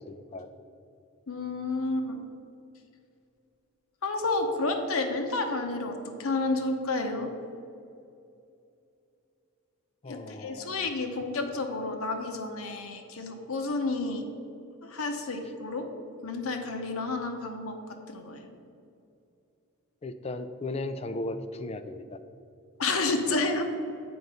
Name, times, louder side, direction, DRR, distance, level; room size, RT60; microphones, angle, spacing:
voice 1, 0.1-0.5 10.0-10.9 20.0-22.2, left 2 dB, 30° left, 10 dB, 0.4 m, -36 dB
voice 2, 1.3-2.2 4.0-7.3 10.0-14.2 14.8-15.9 16.2-17.8 18.1-18.5 22.8-23.6, left 3 dB, 70° left, 5 dB, 0.9 m, -30 dB
7.8 x 4.7 x 5.4 m, 2.6 s
head